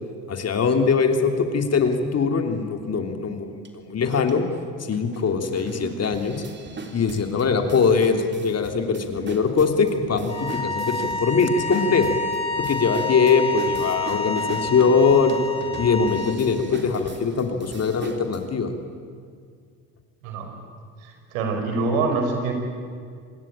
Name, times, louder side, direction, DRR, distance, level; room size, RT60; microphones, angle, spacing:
voice 1, 0.3-3.5 3.9-4.4 4.8-6.4 6.9-12.0 12.6-15.4 15.8-18.7, left 5 dB, 40° left, 6 dB, 3.1 m, -22 dB
sound 1, 3.6-3.7 4.3-4.4 4.9-18.4, right 3 dB, 25° right, 3.6 m, -39 dB
sound 2, 10.3-16.4, left 3 dB, 15° left, 5.0 m, -28 dB
voice 2, 20.2-20.5 21.0-22.5, right 3 dB, 75° right, 4 dB, 5.6 m, -25 dB
26.5 x 20.5 x 9.0 m, 2.1 s
hypercardioid pair, 75°, 41 cm